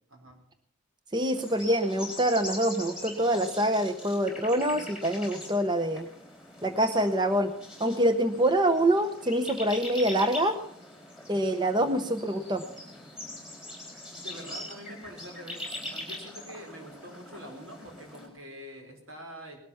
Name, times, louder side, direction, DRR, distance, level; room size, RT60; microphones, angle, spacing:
voice 1, 1.1-6.1 6.6-7.5 7.8-10.6 11.3-12.6, right 1 dB, 20° right, 9 dB, 0.7 m, -25 dB
sound 1, 1.3-18.3, left 1 dB, 5° right, 4.5 m, -42 dB
voice 2, 14.1-19.6, equal, 75° right, 2 dB, 4.7 m, -45 dB
19.5 x 12.5 x 5.7 m, 0.72 s
head